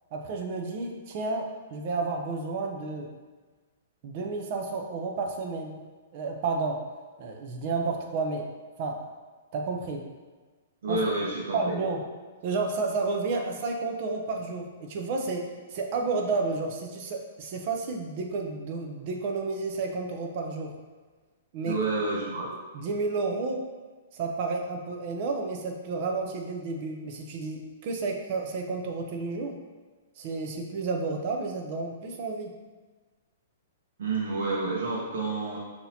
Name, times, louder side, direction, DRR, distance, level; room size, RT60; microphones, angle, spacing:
voice 1, 0.1-3.1 4.0-5.8 6.1-6.8 7.2-8.4 8.8-9.0 9.5-10.0 10.9-11.0 11.5-12.0 12.4-15.4 15.7-20.7 21.5-21.8 22.7-23.6 24.1-29.6 30.2-32.5, right 3 dB, 40° right, 2 dB, 0.6 m, -31 dB
voice 2, 10.8-11.8 21.6-22.5 34.0-35.6, right 3 dB, 75° right, -4 dB, 0.9 m, -29 dB
5.9 x 2.9 x 2.8 m, 1.4 s
hypercardioid pair, 160°, 0 cm